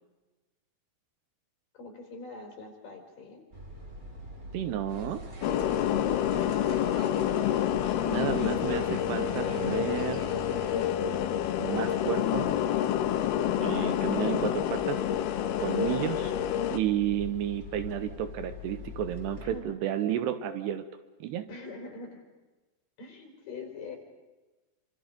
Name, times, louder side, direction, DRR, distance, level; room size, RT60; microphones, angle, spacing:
voice 1, 1.7-3.5 19.4-19.8 21.5-22.2 23.0-24.0, left 3 dB, 50° left, 2 dB, 5.8 m, -43 dB
sound 1, 3.5-19.6, left 1 dB, 20° right, 2.3 m, -44 dB
voice 2, 4.5-5.3 8.1-10.3 11.6-12.6 13.6-15.0 15.6-16.3 16.7-20.8 21.2-21.5, right 11 dB, 80° right, 10 dB, 3.0 m, -32 dB
sound 2, 4.9-10.9, right 1 dB, 45° right, 0.9 m, -44 dB
sound 3, 5.4-16.8, left 11 dB, 75° left, 2.8 m, -28 dB
27.5 x 25.5 x 5.2 m, 1.2 s
omnidirectional pair, 4.9 m